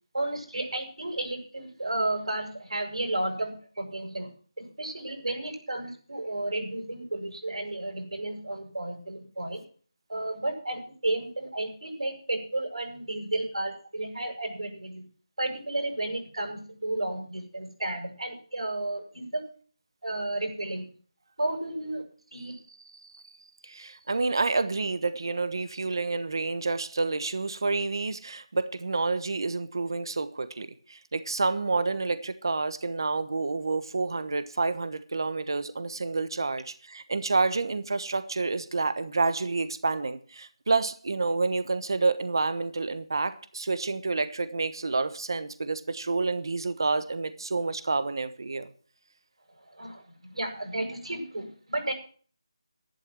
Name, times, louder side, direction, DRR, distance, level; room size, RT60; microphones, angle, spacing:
voice 1, 0.1-4.3 4.6-9.6 10.1-15.1 15.4-19.4 20.0-20.9 21.4-22.0 22.3-22.5 49.7-51.9, right 2 dB, 85° right, 3 dB, 7.5 m, -32 dB
voice 2, 22.9-23.2 23.6-48.7, right 3 dB, 45° right, 12 dB, 1.1 m, -29 dB
12.0 x 11.5 x 6.2 m, 0.43 s
figure-of-eight pair, 175°, 3 cm